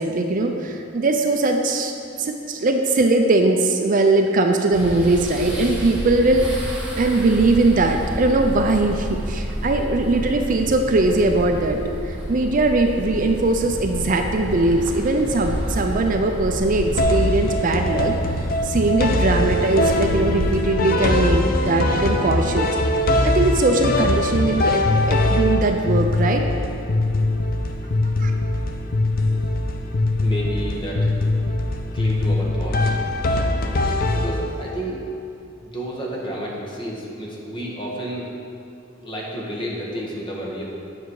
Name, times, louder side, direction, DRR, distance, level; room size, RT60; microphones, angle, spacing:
voice 1, 0.0-1.9 2.2-6.7 7.0-11.8 12.0-18.1 18.6-22.7 23.2-24.8 25.1-26.4 28.2-28.3, right 2 dB, 45° right, 4 dB, 0.5 m, -20 dB
sound 1, 4.7-20.6, equal, 5° right, 1.7 m, -30 dB
sound 2, 17.0-34.8, left 2 dB, 50° left, 0.6 m, -21 dB
voice 2, 30.2-31.1 31.9-32.9 34.1-35.0 35.6-38.3 39.0-40.6, right 1 dB, 25° left, -4 dB, 1.5 m, -31 dB
9.2 x 6.1 x 4.7 m, 2.6 s
head